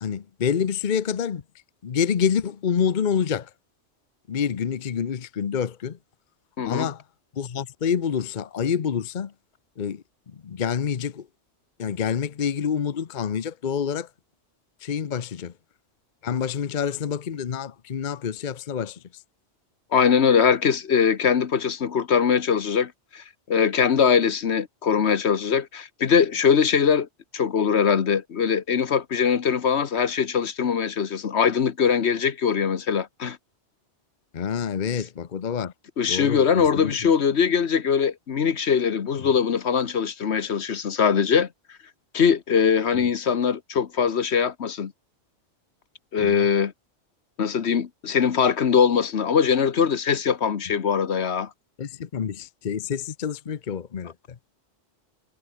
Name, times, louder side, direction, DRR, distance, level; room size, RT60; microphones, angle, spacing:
voice 1, 0.0-1.4 1.8-3.5 4.3-6.0 6.6-7.0 7.4-9.3 9.8-10.0 10.4-11.3 11.8-14.1 14.8-15.5 16.2-19.0 34.3-35.7 36.1-36.9 39.2-39.3 42.9-43.1 46.2-46.5 51.8-54.1, left 7 dB, 45° left, 0.9 m, -27 dB
voice 2, 6.6-6.9 19.9-27.1 27.3-33.4 34.9-35.0 36.0-41.5 42.1-44.9 46.1-46.7 47.4-51.5, left 7 dB, 70° left, 1.4 m, -22 dB
omnidirectional pair, 1.2 m